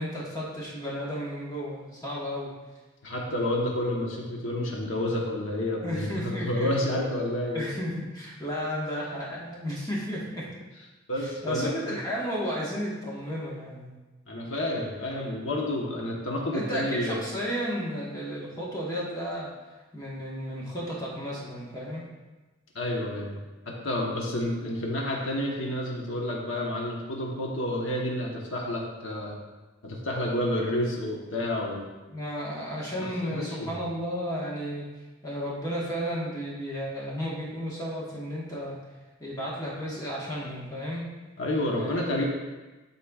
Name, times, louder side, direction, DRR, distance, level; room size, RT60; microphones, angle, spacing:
voice 1, 0.0-2.5 5.8-6.7 7.5-10.5 11.2-13.9 16.5-19.5 19.9-22.0 32.1-34.9 35.2-38.8 39.2-41.0 41.7-42.2, equal, 20° left, -6 dB, 1.3 m, -33 dB
voice 2, 3.0-7.7 11.1-12.0 14.3-17.3 22.7-23.4 23.7-29.3 29.8-31.9 33.0-33.7 41.4-42.2, left 1 dB, 85° left, -1 dB, 1.1 m, -30 dB
11.5 x 4.2 x 2.4 m, 1.2 s
head